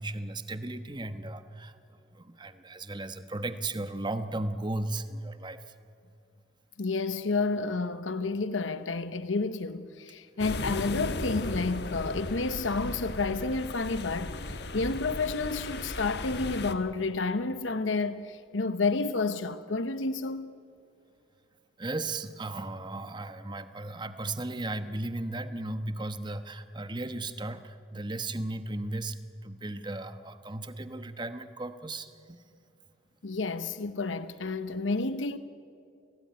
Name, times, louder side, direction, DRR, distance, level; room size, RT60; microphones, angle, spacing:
voice 1, 0.0-5.6 21.8-29.2 29.4-32.4, right 2 dB, 25° right, 1.1 m, -36 dB
voice 2, 6.8-20.5 33.2-35.4, left 3 dB, 85° left, 0.9 m, -30 dB
sound 1, 10.4-16.7, left 2 dB, 60° left, 1.3 m, -36 dB
29.0 x 18.0 x 9.5 m
head